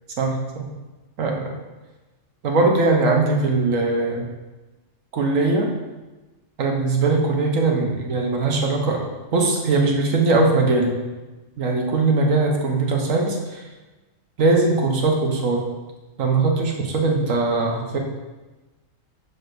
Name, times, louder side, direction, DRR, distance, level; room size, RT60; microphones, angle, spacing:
voice 1, 0.2-0.7 1.2-1.5 2.4-4.3 5.1-5.7 6.6-9.0 9.3-10.9 11.6-13.6 14.4-15.6 16.2-18.0, right 3 dB, 80° right, 1 dB, 1.3 m, -20 dB
6.6 x 6.2 x 2.6 m, 1.2 s
omnidirectional pair, 1.4 m